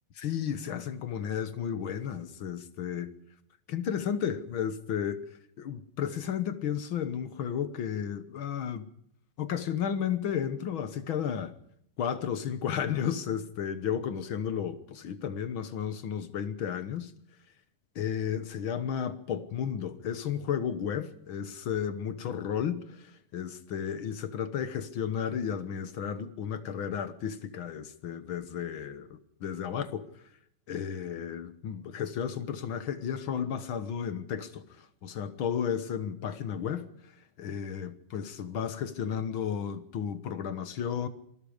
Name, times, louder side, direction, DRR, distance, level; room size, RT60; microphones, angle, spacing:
voice 1, 0.1-3.1 3.7-5.3 5.6-8.9 9.4-11.5 12.0-17.1 17.9-30.1 30.7-36.9 37.4-41.1, left 8 dB, 60° left, 1.4 m, -33 dB
26.5 x 20.0 x 5.1 m
omnidirectional pair, 3.7 m